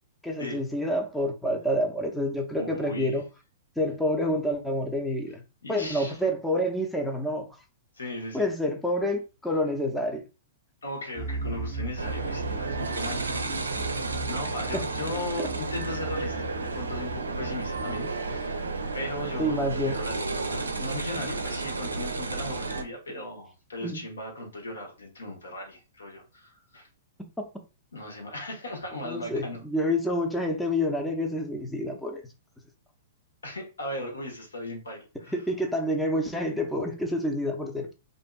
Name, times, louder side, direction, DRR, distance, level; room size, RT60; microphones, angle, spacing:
voice 1, 0.2-3.2 3.8-5.4 5.7-7.5 8.3-10.2 14.7-14.8 15.4-15.5 19.4-20.0 23.8-24.0 29.0-32.2 35.3-37.9, left 1 dB, 5° left, 0.6 m, -28 dB
voice 2, 2.6-3.2 5.6-6.2 7.9-8.5 10.8-18.7 18.9-26.9 27.9-29.6 33.4-35.3, left 1 dB, 85° left, 1.1 m, -37 dB
sound 1, 11.1-17.9, right 3 dB, 40° right, 0.8 m, -37 dB
sound 2, 12.0-22.8, right 3 dB, 90° right, 0.4 m, -32 dB
2.6 x 2.5 x 2.2 m
hypercardioid pair, 115°, 0 cm